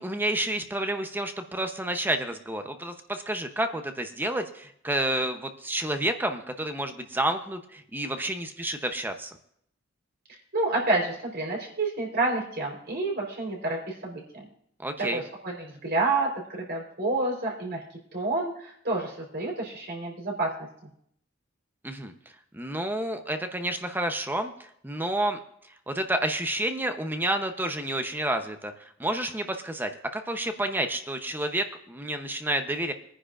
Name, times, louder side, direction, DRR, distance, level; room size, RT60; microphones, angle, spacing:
voice 1, 0.0-9.3 14.8-15.2 21.8-22.1 22.5-24.5 24.8-25.4 25.9-28.7 29.0-32.9, right 1 dB, 10° right, 6 dB, 0.8 m, -30 dB
voice 2, 10.5-14.5 15.0-17.8 18.1-20.5, right 2 dB, 55° right, -1 dB, 4.0 m, -29 dB
22.0 x 9.9 x 2.5 m, 0.69 s
head